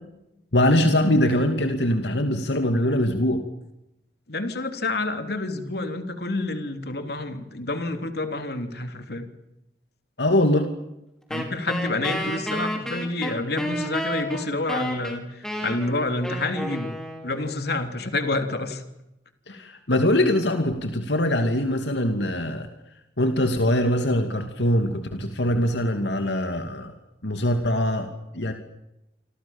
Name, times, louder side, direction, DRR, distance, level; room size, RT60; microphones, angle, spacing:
voice 1, 0.5-3.4 10.2-10.7 19.5-22.7 23.2-26.9 27.2-28.5, left 1 dB, 80° left, 6 dB, 2.7 m, -22 dB
voice 2, 4.3-9.3 11.3-16.9 17.2-18.8, left 2 dB, 65° left, 7 dB, 3.4 m, -28 dB
Wind instrument woodwind instrument, 11.3-17.6, equal, 5° left, 5.6 m, -31 dB
27.5 x 27.0 x 7.4 m, 0.88 s
head